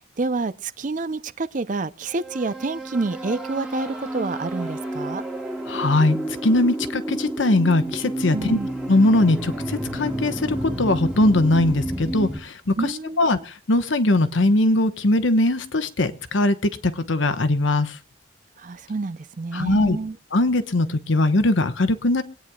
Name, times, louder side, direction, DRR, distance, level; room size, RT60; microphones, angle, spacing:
voice 1, 0.2-5.2 8.3-8.7 12.8-13.4 18.6-20.2, right 3 dB, 40° right, 0.5 m, -28 dB
sound 1, 2.1-12.4, right 1 dB, 5° right, 1.6 m, -30 dB
voice 2, 5.7-6.2 6.4-8.6 8.9-12.5 12.8-17.9 19.5-20.0 20.3-22.2, left 2 dB, 75° left, 1.1 m, -20 dB
25.0 x 9.3 x 2.3 m
head